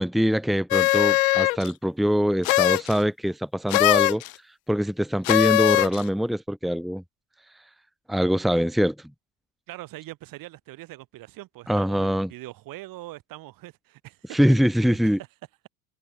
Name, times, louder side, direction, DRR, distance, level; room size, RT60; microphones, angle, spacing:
voice 1, 0.0-4.2 4.7-7.0 8.1-8.9 11.7-12.3 14.3-15.2, equal, ahead, 1.5 m, -23 dB
sound 1, 0.7-1.7 2.4-3.0 3.7-4.3 5.2-6.0, left 21 dB, 70° left, 1.2 m, -20 dB
voice 2, 9.7-14.4 14.8-15.2, right 17 dB, 50° right, 3.9 m, -42 dB
hypercardioid pair, 85°, 43 cm